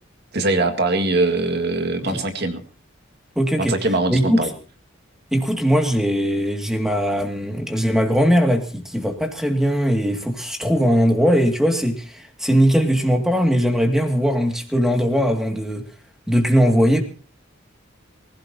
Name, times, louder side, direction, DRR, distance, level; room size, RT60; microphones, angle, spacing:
voice 1, 0.3-2.6 3.6-4.5, right 2 dB, 55° right, 6 dB, 2.0 m, -22 dB
voice 2, 3.4-3.7 4.1-4.5 5.3-15.9 16.3-17.0, equal, ahead, 4 dB, 2.3 m, -20 dB
24.5 x 16.0 x 2.9 m, 0.38 s
head